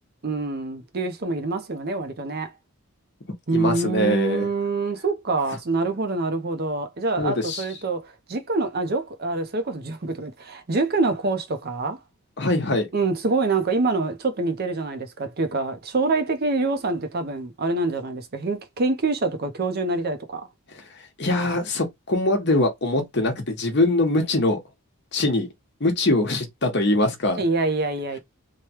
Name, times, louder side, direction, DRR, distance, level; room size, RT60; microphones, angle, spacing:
voice 1, 0.2-2.5 3.5-12.0 12.9-20.5 27.4-28.2, right 3 dB, 45° right, 0.6 m, -25 dB
voice 2, 3.5-4.5 7.2-7.6 12.4-12.9 21.2-24.6 25.1-25.5 25.8-27.4, left 2 dB, 50° left, 1.0 m, -22 dB
3.2 x 2.2 x 2.8 m
head